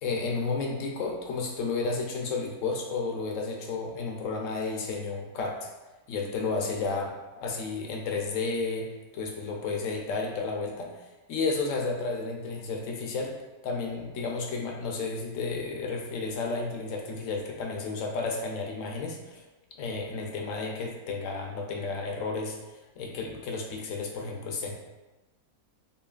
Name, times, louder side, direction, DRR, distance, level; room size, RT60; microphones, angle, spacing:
voice 1, 0.0-5.7 6.1-7.1 7.4-13.3 13.6-19.4 19.8-22.6 23.0-24.7, left 4 dB, 65° left, 1 dB, 0.9 m, -32 dB
5.5 x 2.3 x 2.4 m, 1.1 s
omnidirectional pair, 1.6 m